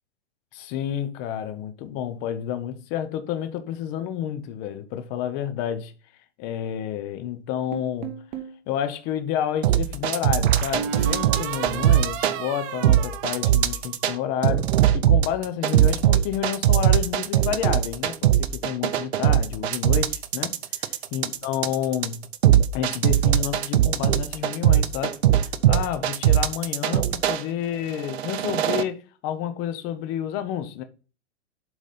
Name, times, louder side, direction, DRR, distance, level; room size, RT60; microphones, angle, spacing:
voice 1, 0.5-5.9 6.4-8.1 8.7-14.7 14.9-20.5 20.8-22.2 22.7-25.2 25.7-30.8, left 10 dB, 25° left, 0.8 m, -30 dB
sound 1, 7.7-8.6 10.4-14.1, right 8 dB, 15° right, 0.4 m, -33 dB
sound 2, 9.6-12.4 12.8-14.1 14.4-27.4 28.0-28.8, right 12 dB, 60° right, 0.8 m, -20 dB
7.6 x 4.1 x 5.3 m
hypercardioid pair, 155°, 36 cm